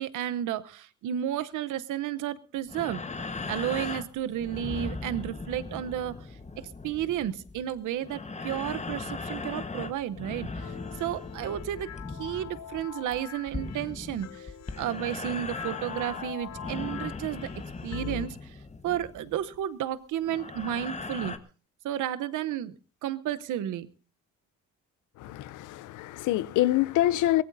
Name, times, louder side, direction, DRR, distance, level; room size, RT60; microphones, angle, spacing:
voice 1, 0.0-3.0 3.5-6.1 6.8-11.9 12.2-17.5 17.8-18.5 18.8-21.4 21.8-22.7 23.0-23.9, right 11 dB, 80° right, 0.9 m, -32 dB
sound 1, 2.7-19.5 20.2-21.4, left 3 dB, 25° left, 1.3 m, -38 dB
sound 2, 10.6-18.3, left 9 dB, 60° left, 1.0 m, -43 dB
voice 2, 25.2-27.4, left 14 dB, 90° left, 0.7 m, -26 dB
23.0 x 17.0 x 2.7 m
cardioid pair, 90°, 30 cm